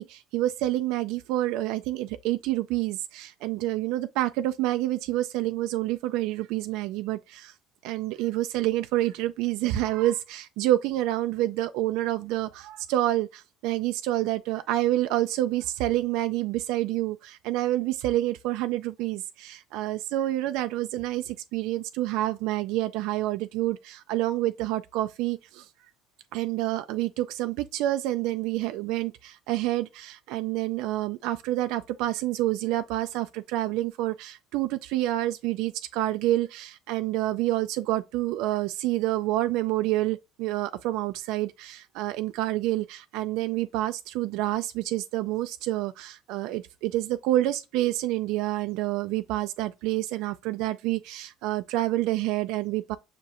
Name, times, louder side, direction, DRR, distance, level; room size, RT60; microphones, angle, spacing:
voice 1, 0.0-7.5 7.8-25.7 26.3-53.0, right 15 dB, 70° right, 0.3 m, -28 dB
5.9 x 2.6 x 2.9 m
cardioid pair, 140°, 0 cm